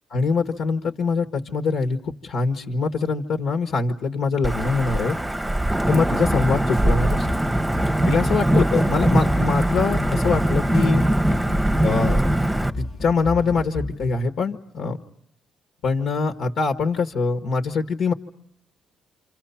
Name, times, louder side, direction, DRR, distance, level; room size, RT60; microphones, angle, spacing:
voice 1, 0.1-5.2 5.9-7.3 8.1-11.0 11.8-12.2 12.8-15.0 15.8-18.1, left 4 dB, 75° left, 6 dB, 1.7 m, -23 dB
Wind / Thunder / Rain, 4.4-12.7, right 1 dB, 5° right, 1.0 m, -21 dB
sound 1, 6.2-14.3, left 2 dB, 35° left, 1.1 m, -33 dB
28.0 x 27.5 x 5.8 m, 0.70 s
cardioid pair, 90°, 0 cm